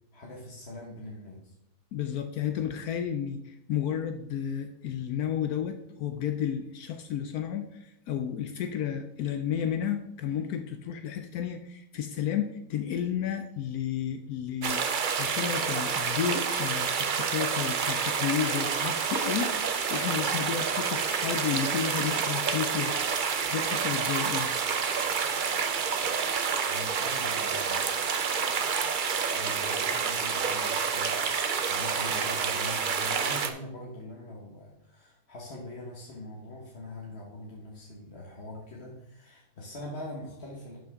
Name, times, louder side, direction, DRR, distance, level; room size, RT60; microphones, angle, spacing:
voice 1, 0.1-1.5 26.7-27.9 29.3-31.2 31.7-40.8, left 1 dB, 45° left, -3 dB, 1.5 m, -42 dB
voice 2, 1.9-23.0 23.4-24.5, left 8 dB, 75° left, 7 dB, 1.1 m, -32 dB
sound 1, 14.6-33.5, right 6 dB, 50° right, 0.6 m, -28 dB
11.5 x 6.0 x 3.6 m, 0.83 s
omnidirectional pair, 1.7 m